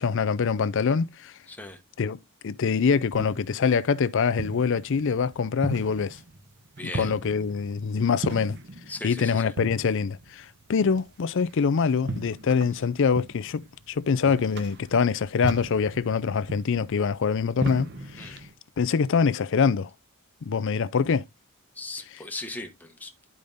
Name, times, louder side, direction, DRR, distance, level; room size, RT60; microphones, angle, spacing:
voice 1, 0.0-1.3 2.0-2.2 2.4-6.2 6.8-8.6 9.0-18.4 18.8-19.9 20.4-21.2, left 5 dB, 60° left, 0.4 m, -24 dB
voice 2, 1.5-1.8 6.8-7.1 8.9-9.5 18.2-18.4 21.8-23.1, left 2 dB, 10° left, 1.0 m, -38 dB
sound 1, 2.6-18.5, right 1 dB, 50° right, 0.9 m, -38 dB
11.0 x 5.1 x 2.6 m
head